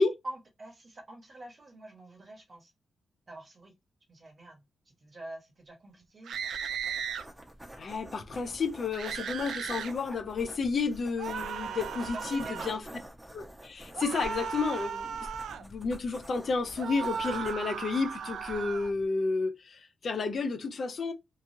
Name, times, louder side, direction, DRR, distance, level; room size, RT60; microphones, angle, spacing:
voice 1, 0.2-2.7 3.3-3.8 4.1-6.3 11.4-13.0, right 1 dB, 35° right, 1.1 m, -46 dB
sound 1, 6.2-7.2 8.9-9.9 11.2-12.8 13.9-15.6 16.8-18.9, right 7 dB, 85° right, 0.3 m, -36 dB
sound 2, 6.3-19.1, right 1 dB, 15° right, 0.7 m, -48 dB
voice 2, 7.8-12.8 13.3-15.3 15.6-21.1, left 4 dB, 50° left, 0.5 m, -31 dB
3.0 x 2.4 x 2.6 m
cardioid pair, 110°, 0 cm